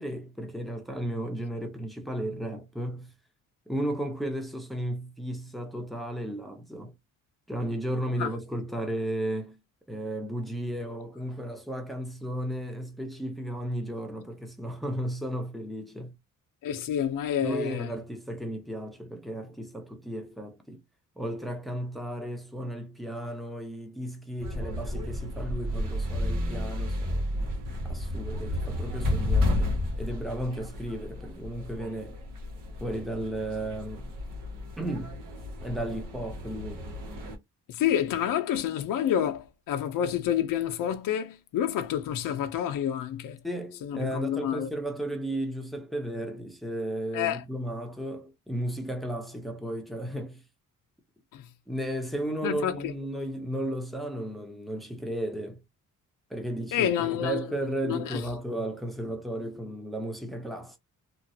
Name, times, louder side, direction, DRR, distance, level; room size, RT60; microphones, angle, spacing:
voice 1, 0.0-3.1 3.7-6.9 7.5-9.6 9.9-16.2 17.4-20.8 21.2-27.3 27.8-32.2 32.8-34.1 34.8-35.2 35.6-36.9 43.4-50.4 51.7-55.6 56.3-60.8, right 1 dB, ahead, 0.7 m, -34 dB
voice 2, 16.6-17.9 37.7-43.4 43.8-44.7 47.1-47.4 51.3-51.4 52.4-52.7 56.7-57.5 57.8-58.2, left 10 dB, 80° left, 0.6 m, -28 dB
sound 1, 24.4-37.4, left 1 dB, 75° right, 1.2 m, -32 dB
2.9 x 2.4 x 2.7 m
cardioid pair, 130°, 32 cm